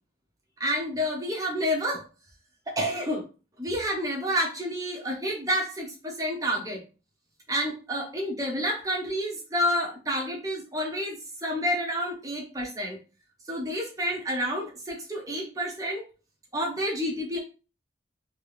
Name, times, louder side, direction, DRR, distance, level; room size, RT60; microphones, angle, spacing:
voice 1, 0.6-2.0 2.7-3.3 3.6-6.8 7.5-13.0 13.5-16.0 16.5-17.4, equal, 20° right, -1 dB, 1.1 m, -29 dB
3.3 x 3.3 x 3.4 m, 0.33 s
head